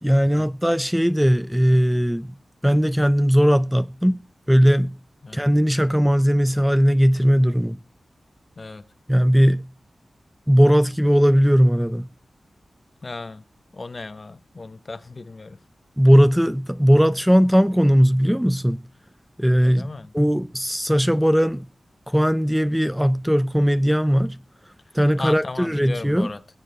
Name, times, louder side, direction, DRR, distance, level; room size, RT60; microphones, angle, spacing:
voice 1, 0.0-2.4 2.6-4.2 4.5-5.0 5.3-7.8 9.1-9.7 10.5-12.1 16.0-18.8 19.4-21.7 22.1-24.4 24.9-26.3, equal, 5° right, 0.5 m, -18 dB
voice 2, 8.6-8.9 13.0-13.4 13.7-15.6 19.6-20.1 24.8-26.4, left 3 dB, 50° left, 1.0 m, -36 dB
20.0 x 7.4 x 4.1 m
cardioid pair, 45°, 0 cm